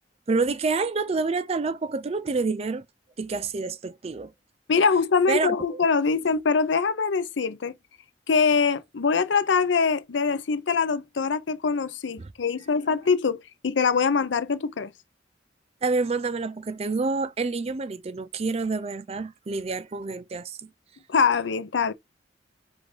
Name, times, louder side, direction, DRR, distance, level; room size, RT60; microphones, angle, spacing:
voice 1, 0.3-2.8 3.2-4.3 5.3-5.9 12.2-12.3 15.8-20.6, right 4 dB, 35° right, 0.4 m, -28 dB
voice 2, 4.7-7.7 8.3-14.9 21.1-21.9, left 5 dB, 75° left, 0.6 m, -23 dB
4.8 x 2.5 x 3.6 m
head